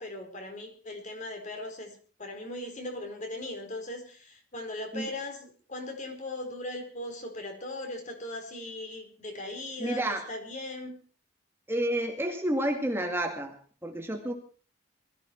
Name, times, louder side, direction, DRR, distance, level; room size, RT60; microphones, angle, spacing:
voice 1, 0.0-11.0, left 2 dB, 40° left, 4 dB, 4.3 m, -39 dB
voice 2, 9.8-10.2 11.7-13.6 13.8-14.3, right 1 dB, 15° right, 3 dB, 2.2 m, -30 dB
21.5 x 14.0 x 4.6 m, 0.41 s
head